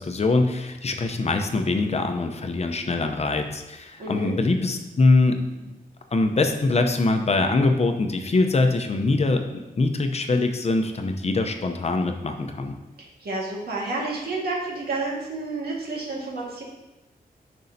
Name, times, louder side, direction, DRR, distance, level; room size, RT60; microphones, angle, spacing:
voice 1, 0.0-5.7 6.1-9.5 9.8-12.8, left 3 dB, 45° left, 5 dB, 0.7 m, -23 dB
voice 2, 4.0-4.3 13.0-16.6, right 3 dB, 90° right, -3 dB, 1.7 m, -30 dB
9.1 x 5.5 x 2.7 m, 1.0 s
wide cardioid pair, 95°, 16 cm